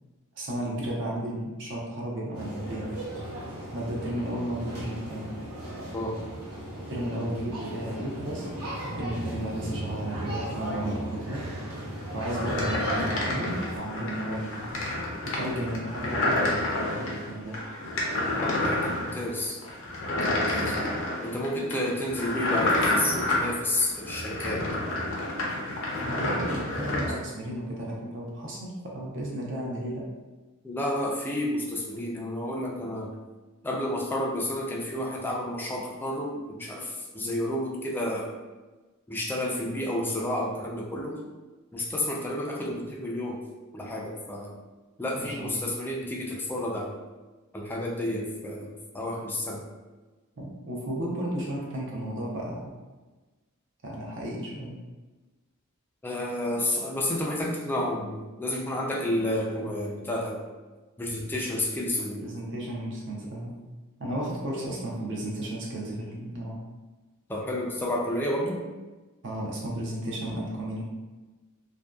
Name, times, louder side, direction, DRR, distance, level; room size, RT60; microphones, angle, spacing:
voice 1, 0.3-2.9 3.7-5.3 6.9-8.5 8.9-11.5 12.1-14.7 15.2-17.6 20.7-20.8 26.1-30.0 45.2-45.7 50.4-52.7 53.8-54.8 62.2-63.6 64.0-66.6 69.2-70.8, right 1 dB, 60° right, -3 dB, 0.6 m, -34 dB
sound 1, 2.3-13.8, right 1 dB, 90° right, 0.9 m, -36 dB
sound 2, 12.3-27.1, left 1 dB, 60° left, 0.5 m, -29 dB
voice 2, 18.4-19.5 20.1-20.8 21.2-24.6 30.6-33.1 33.6-38.3 39.1-41.2 41.7-43.4 43.7-44.6 45.0-46.9 47.5-49.6 56.0-60.4 61.0-62.3 67.3-68.6, left 1 dB, 10° left, -3 dB, 0.3 m, -30 dB
2.5 x 2.2 x 2.3 m, 1.2 s
head